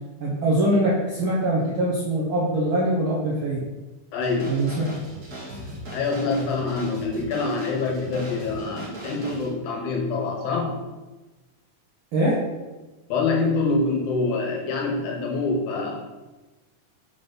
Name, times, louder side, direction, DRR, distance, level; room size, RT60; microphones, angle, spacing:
voice 1, 0.2-3.6 4.5-4.9 12.1-12.4, right 1 dB, 65° right, -5 dB, 1.3 m, -23 dB
voice 2, 4.1-4.5 5.9-10.8 13.1-16.0, left 3 dB, 75° left, -1 dB, 2.4 m, -25 dB
sound 1, 4.2-9.5, right 1 dB, 45° right, 1.4 m, -39 dB
5.8 x 3.8 x 5.3 m, 1.2 s
omnidirectional pair, 3.6 m